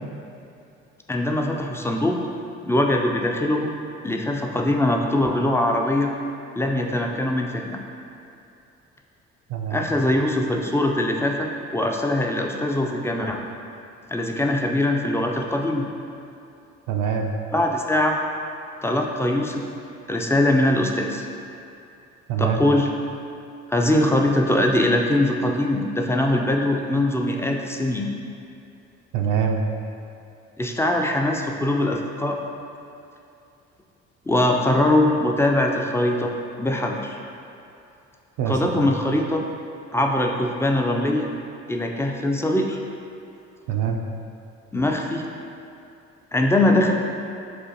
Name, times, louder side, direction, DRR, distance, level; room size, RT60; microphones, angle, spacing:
voice 1, 1.1-2.2 2.6-3.7 4.0-6.1 6.6-7.8 9.7-13.4 14.1-15.9 17.5-18.2 18.8-19.6 20.1-21.2 22.4-22.9 23.7-28.1 30.6-32.4 34.3-36.3 36.6-37.2 38.5-39.5 39.9-41.3 41.7-42.8 44.7-45.3 46.3-46.9, left 1 dB, 10° left, 1 dB, 0.3 m, -22 dB
voice 2, 9.5-9.8 16.9-17.3 22.3-22.6 29.1-29.6 38.4-38.8 43.7-44.0, right 7 dB, 60° right, 2 dB, 0.4 m, -24 dB
6.2 x 2.5 x 2.8 m, 2.6 s
hypercardioid pair, 50°, 35 cm